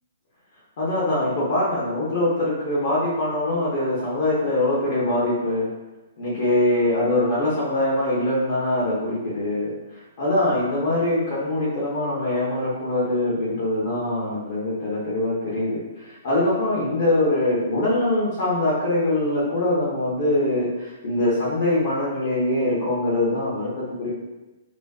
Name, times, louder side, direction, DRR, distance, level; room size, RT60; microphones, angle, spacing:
voice 1, 0.8-5.7 6.2-9.7 10.2-24.1, left 1 dB, 45° left, -8 dB, 0.6 m, -23 dB
2.4 x 2.4 x 2.2 m, 1.1 s
hypercardioid pair, 170°, 0 cm